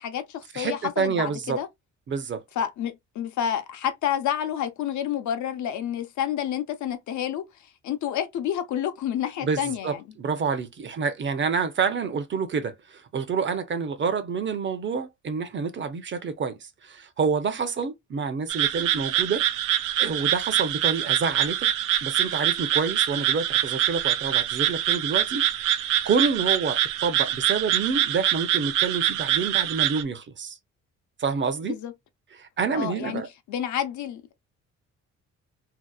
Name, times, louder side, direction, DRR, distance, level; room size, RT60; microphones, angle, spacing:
voice 1, 0.0-1.7 2.6-7.5 7.8-10.0 31.7-31.9 32.7-33.2 33.5-34.2, left 10 dB, 70° left, 0.7 m, -29 dB
voice 2, 0.5-1.6 2.1-2.4 9.4-19.4 20.0-21.7 22.0-25.4 26.0-30.6 31.2-31.8 32.3-33.3, right 5 dB, 40° right, 0.6 m, -28 dB
sound 1, 18.5-30.0, right 12 dB, 90° right, 0.5 m, -25 dB
2.7 x 2.0 x 2.3 m
cardioid pair, 90°, 30 cm